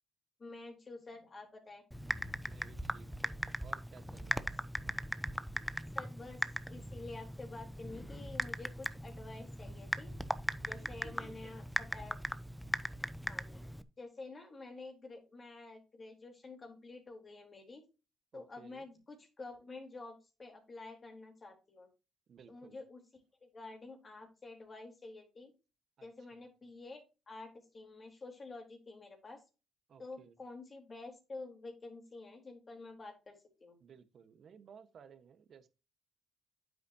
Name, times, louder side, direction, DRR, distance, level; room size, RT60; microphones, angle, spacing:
voice 1, 0.4-1.8 5.9-6.4 6.7-10.1 10.7-12.2 13.3-13.6 14.0-17.8 18.3-21.9 22.5-25.5 26.0-29.4 30.0-33.7, left 3 dB, 35° left, 3.9 m, -49 dB
Typing, 1.9-13.8, equal, ahead, 0.7 m, -39 dB
voice 2, 2.4-5.0 10.7-11.6 18.3-18.9 22.3-22.8 26.0-26.1 29.9-30.3 33.8-35.7, right 7 dB, 60° right, 1.4 m, -58 dB
9.5 x 8.2 x 2.9 m
cardioid pair, 90°, 0 cm